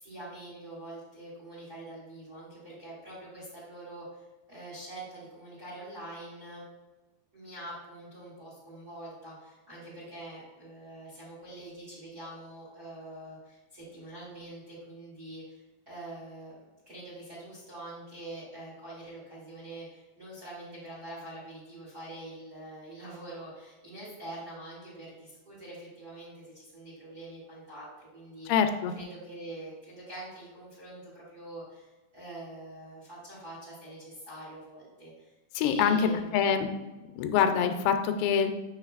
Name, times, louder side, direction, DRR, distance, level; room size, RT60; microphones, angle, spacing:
voice 1, 0.0-6.6 7.3-16.5 16.9-28.5 28.9-35.3 35.6-36.4, right 1 dB, 30° right, -7 dB, 1.9 m, -45 dB
voice 2, 28.5-28.9 35.6-36.7 37.2-38.5, left 7 dB, 85° left, 7 dB, 2.8 m, -25 dB
7.3 x 6.4 x 2.4 m, 1.1 s
omnidirectional pair, 4.9 m